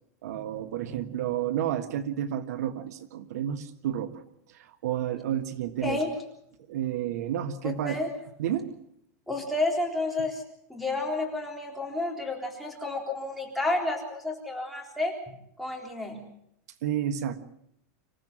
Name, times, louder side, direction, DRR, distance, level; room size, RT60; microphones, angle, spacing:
voice 1, 0.2-4.2 4.5-6.0 6.7-8.0 8.4-8.7 16.8-17.4, right 10 dB, 70° right, 10 dB, 1.6 m, -31 dB
voice 2, 9.3-10.4 10.7-15.1 15.6-16.2, left 2 dB, ahead, 3 dB, 3.9 m, -30 dB
26.5 x 16.0 x 7.5 m, 0.73 s
supercardioid pair, 165°, 9 cm